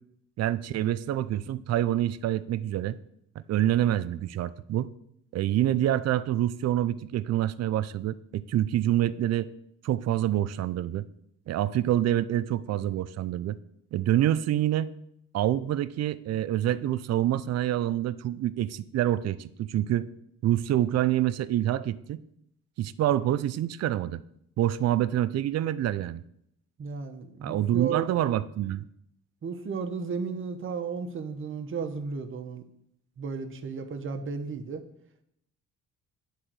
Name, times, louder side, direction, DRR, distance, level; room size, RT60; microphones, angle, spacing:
voice 1, 0.4-3.0 3.4-4.9 5.3-9.5 9.8-11.1 11.5-13.6 13.9-14.9 15.3-20.1 20.4-22.2 22.8-24.2 24.6-26.2 27.4-28.9, right 12 dB, 60° right, 15 dB, 0.5 m, -26 dB
voice 2, 26.8-28.2 29.4-32.6 33.2-34.8, right 5 dB, 45° right, 6 dB, 1.0 m, -34 dB
9.8 x 3.7 x 6.2 m, 0.73 s
cardioid pair, 90°, 30 cm